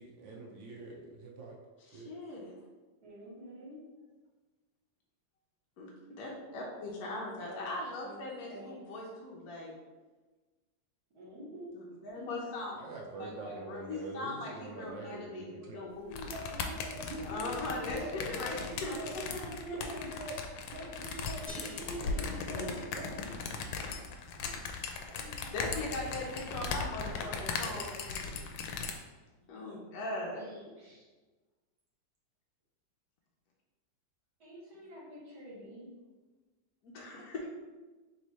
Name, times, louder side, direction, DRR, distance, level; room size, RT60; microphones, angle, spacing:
voice 1, 0.0-1.6 1.9-2.1 12.7-15.9 16.2-18.1 18.4-19.1 19.4-20.3 20.7-22.7 22.9-23.2 37.2-37.3, right 2 dB, 85° right, -1 dB, 1.4 m, -44 dB
voice 2, 1.9-2.5 5.8-9.7 11.7-12.8 13.2-16.3 17.2-19.2 19.7-20.0 22.0-22.8 25.5-28.1 28.7-28.9 29.5-30.5 36.8-37.5, left 2 dB, 65° left, -3 dB, 1.0 m, -40 dB
voice 3, 3.0-3.8 7.1-7.7 8.0-8.8 11.1-11.7 12.1-12.2 23.8-24.5 25.1-28.3 30.3-31.1 34.4-35.9, right 1 dB, 60° right, -6 dB, 1.9 m, -50 dB
sound 1, 16.1-28.9, left 5 dB, 85° left, 1.3 m, -38 dB
sound 2, 21.5-23.3, equal, 25° right, 0.8 m, -51 dB
3.6 x 3.1 x 4.0 m, 1.3 s
omnidirectional pair, 2.0 m